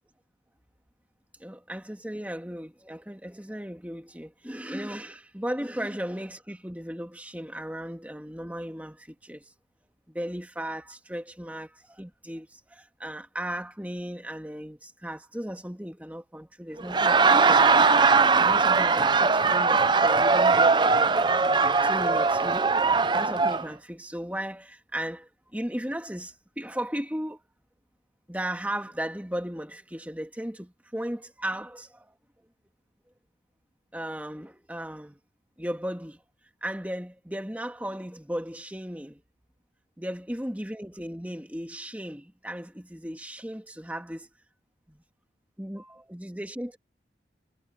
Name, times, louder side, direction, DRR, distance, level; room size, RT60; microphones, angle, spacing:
voice 1, 1.4-9.5 10.1-21.0 21.8-22.7 23.1-27.4 28.3-32.1 33.9-35.2 35.6-36.2 36.6-39.2 40.0-44.3 44.9-45.0 45.6-46.8, equal, 10° right, 2.1 m, -36 dB
Laughter, 16.8-23.6, right 4 dB, 25° right, 0.6 m, -20 dB
head